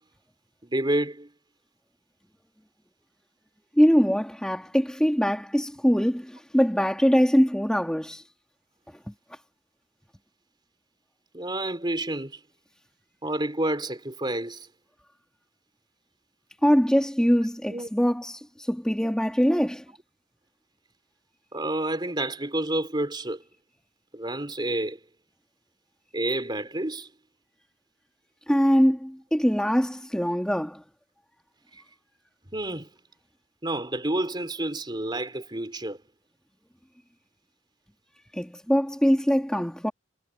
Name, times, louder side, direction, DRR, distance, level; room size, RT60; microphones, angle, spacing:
voice 1, 0.6-1.3 11.3-12.4 13.2-14.7 17.7-17.9 21.5-23.4 24.1-25.0 26.1-27.1 31.7-31.8 32.5-32.9 33.6-36.0 39.5-39.6, right 1 dB, 25° right, 3.4 m, -29 dB
voice 2, 3.8-8.2 16.6-19.8 28.5-30.8 38.3-39.9, equal, 5° left, 2.1 m, -23 dB
head